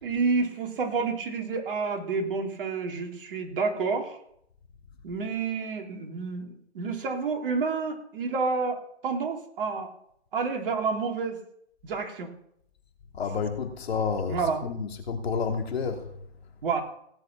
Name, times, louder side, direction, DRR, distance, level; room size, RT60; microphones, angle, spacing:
voice 1, 0.0-4.2 5.0-9.9 10.3-11.4 11.8-12.3 14.3-14.6 16.6-16.8, right 4 dB, 50° right, 3.2 m, -29 dB
voice 2, 13.1-16.1, left 5 dB, 65° left, 3.0 m, -30 dB
17.5 x 8.3 x 5.8 m
hypercardioid pair, 130°, 34 cm